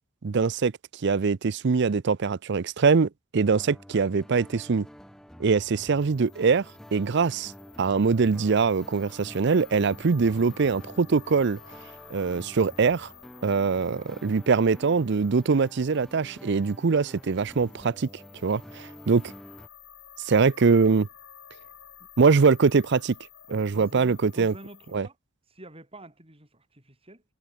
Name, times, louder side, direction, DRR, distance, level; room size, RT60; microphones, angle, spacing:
voice 1, 0.2-0.7 1.0-4.9 5.4-6.7 6.9-7.5 7.8-11.6 12.1-13.1 13.4-18.1 18.4-19.3 20.2-21.1 22.2-23.1 23.5-24.5 24.9-25.1, right 5 dB, 60° right, 0.5 m, -23 dB
sound 1, 3.5-19.7, equal, ahead, 2.2 m, -48 dB
sound 2, 5.9-25.0, left 9 dB, 75° left, 7.2 m, -52 dB
voice 2, 23.5-25.2 25.5-27.2, right 1 dB, 30° right, 6.6 m, -48 dB
head